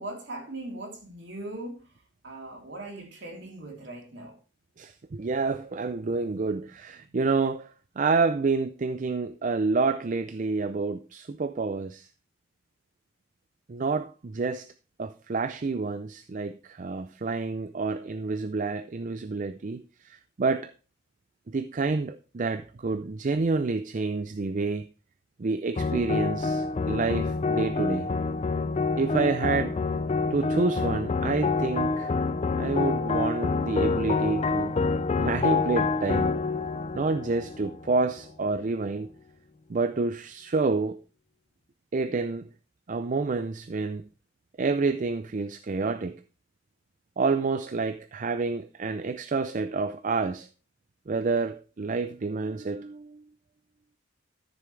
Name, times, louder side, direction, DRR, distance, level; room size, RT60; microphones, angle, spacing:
voice 1, 0.0-4.4 7.0-7.2, right 2 dB, 60° right, 3.3 m, -40 dB
voice 2, 4.8-12.1 13.7-14.7 15.0-20.7 21.5-24.9 25.4-28.1 29.0-29.8 30.3-32.1 32.6-34.8 35.2-36.3 36.9-39.1 39.7-41.0 41.9-42.5 42.9-44.1 44.6-46.2 47.2-50.5 51.1-53.2, right 4 dB, 40° right, 0.4 m, -28 dB
sound 1, 25.8-38.2, left 4 dB, 35° left, 0.4 m, -27 dB
13.0 x 7.1 x 3.2 m
head